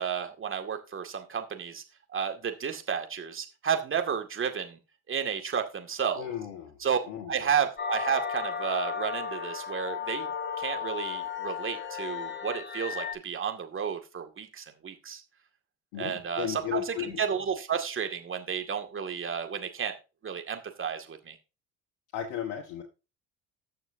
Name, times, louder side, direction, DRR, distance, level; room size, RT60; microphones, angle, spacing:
voice 1, 0.0-1.8 2.1-4.8 5.1-6.3 6.8-7.0 7.3-10.3 10.6-15.2 16.0-19.9 20.2-21.4, right 7 dB, 35° right, 6 dB, 2.1 m, -32 dB
voice 2, 6.1-6.8 7.0-7.5 15.9-17.2 22.1-22.8, left 10 dB, 70° left, 3 dB, 1.5 m, -35 dB
sound 1, 7.8-13.1, left 6 dB, 30° left, 2.2 m, -34 dB
19.0 x 6.7 x 2.7 m, 0.30 s
hypercardioid pair, 60°, 35 cm